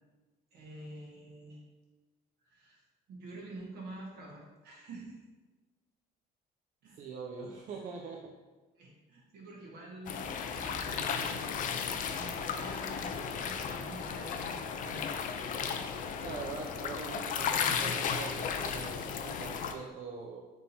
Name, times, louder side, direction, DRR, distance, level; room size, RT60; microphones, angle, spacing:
voice 1, 0.5-1.6 2.4-2.8 3.1-5.2 6.8-7.1 8.8-10.2 10.5-11.4 11.8-15.2, right 2 dB, 70° right, -2 dB, 1.2 m, -47 dB
voice 2, 7.0-8.3 16.2-20.4, right 5 dB, 50° right, 0 dB, 0.5 m, -43 dB
sound 1, 10.1-19.7, left 6 dB, 50° left, 0.4 m, -35 dB
3.6 x 2.8 x 4.1 m, 1.2 s
cardioid pair, 110°, 17 cm